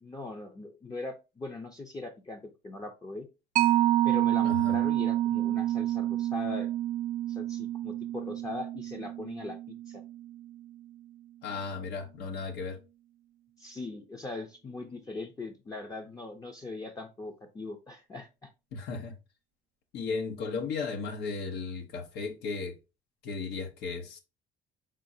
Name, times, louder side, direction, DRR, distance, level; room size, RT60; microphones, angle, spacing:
voice 1, 0.0-3.3 4.0-6.7 7.3-10.0 13.6-18.5, left 3 dB, 20° left, 0.6 m, -40 dB
Mallet percussion, 3.6-10.6, right 13 dB, 55° right, 0.4 m, -28 dB
voice 2, 4.4-4.8 11.4-12.8 18.7-19.1 19.9-22.8 23.2-24.2, left 4 dB, 80° left, 1.0 m, -35 dB
4.9 x 3.7 x 2.7 m
cardioid pair, 110°, 17 cm